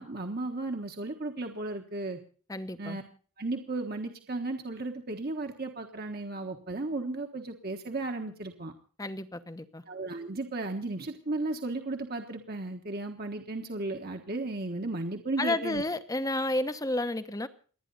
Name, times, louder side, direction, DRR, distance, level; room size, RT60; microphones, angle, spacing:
voice 1, 0.0-2.2 2.8-3.0 3.4-8.7 9.9-15.8, right 2 dB, 45° right, 4 dB, 1.4 m, -35 dB
voice 2, 2.5-3.0 9.0-9.8 15.4-17.5, left 1 dB, 15° left, 11 dB, 0.9 m, -31 dB
29.0 x 10.0 x 4.1 m, 0.41 s
head